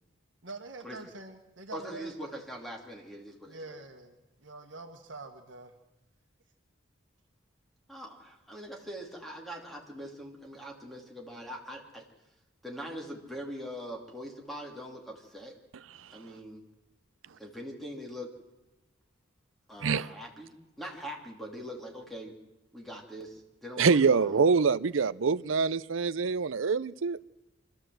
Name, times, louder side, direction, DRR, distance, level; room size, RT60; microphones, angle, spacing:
voice 1, 0.4-2.2 3.5-5.7, right 2 dB, 65° right, 1.5 m, -45 dB
voice 2, 1.7-3.8 7.9-12.0 12.6-15.5 16.1-16.6 17.4-18.3 19.7-22.3 22.7-24.4, equal, ahead, 2.9 m, -42 dB
voice 3, 23.8-27.2, right 5 dB, 85° right, 0.6 m, -25 dB
25.0 x 13.0 x 7.8 m
head